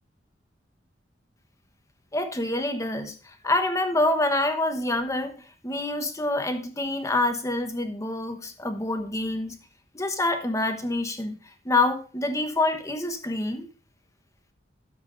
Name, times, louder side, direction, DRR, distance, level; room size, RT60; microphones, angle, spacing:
voice 1, 2.1-5.3 5.6-9.6 9.9-11.4 11.6-13.7, left 2 dB, 15° left, 6 dB, 1.1 m, -26 dB
13.0 x 7.4 x 2.6 m, 0.37 s
head